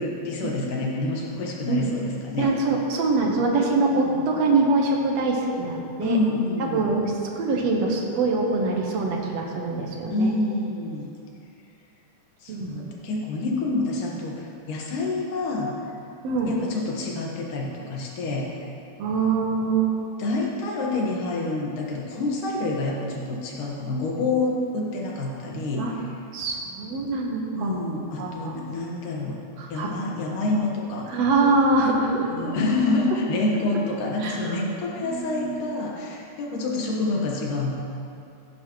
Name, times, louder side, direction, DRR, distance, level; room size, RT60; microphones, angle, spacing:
voice 1, 0.0-2.5 4.1-4.2 6.0-6.9 10.1-11.1 12.4-15.7 16.5-18.7 20.2-25.9 27.6-29.4 29.7-31.1 32.3-37.7, left 2 dB, 90° left, -2 dB, 3.0 m, -27 dB
voice 2, 2.4-6.2 6.6-10.3 12.5-12.9 16.2-16.5 19.0-20.2 25.8-25.9 26.3-27.8 28.2-28.6 29.6-29.9 31.1-32.3 34.2-34.5 34.9-35.6, right 3 dB, 65° right, 0 dB, 2.2 m, -24 dB
16.5 x 9.4 x 3.1 m, 2.6 s
omnidirectional pair, 3.5 m